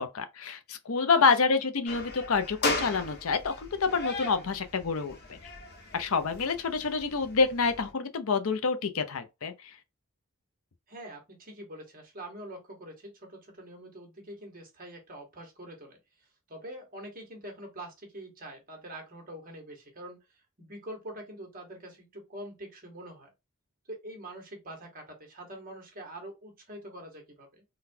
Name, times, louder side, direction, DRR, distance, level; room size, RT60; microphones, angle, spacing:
voice 1, 0.0-5.4 5.9-9.7, left 5 dB, 75° left, 0.6 m, -27 dB
sound 1, 1.9-7.9, left 2 dB, 50° left, 1.0 m, -37 dB
voice 2, 10.9-23.3 23.9-27.6, right 1 dB, 40° right, 1.3 m, -45 dB
3.9 x 2.3 x 2.7 m
head